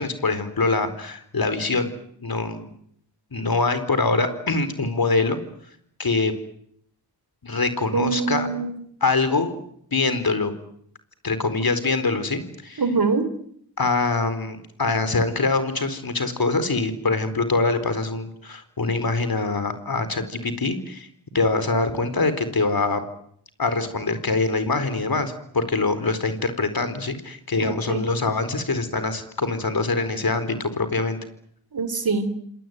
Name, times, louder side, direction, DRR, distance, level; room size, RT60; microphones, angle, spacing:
voice 1, 0.0-1.9 2.2-2.7 3.3-5.4 6.0-6.3 7.4-8.5 9.0-9.6 9.9-10.5 11.2-12.8 13.8-21.1 21.3-23.0 23.6-31.2, left 3 dB, 50° left, 11 dB, 4.4 m, -24 dB
voice 2, 7.9-8.7 12.8-13.3 27.6-28.1 31.7-32.3, right 4 dB, 50° right, 13 dB, 3.5 m, -24 dB
27.5 x 19.5 x 9.4 m, 0.69 s
cardioid pair, 50°, 44 cm